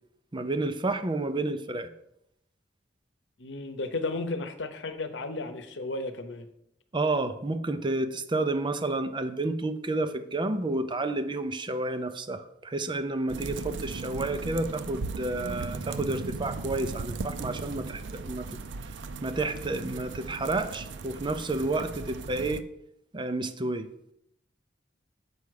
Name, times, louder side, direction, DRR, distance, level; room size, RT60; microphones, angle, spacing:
voice 1, 0.3-1.9 6.9-18.5 19.2-22.6 23.1-23.9, right 2 dB, 25° right, 9 dB, 0.6 m, -30 dB
voice 2, 3.4-6.5, left 2 dB, 80° left, 9 dB, 0.9 m, -34 dB
sound 1, 13.3-22.6, right 3 dB, 75° right, 0.5 m, -37 dB
7.0 x 4.8 x 6.5 m, 0.77 s
head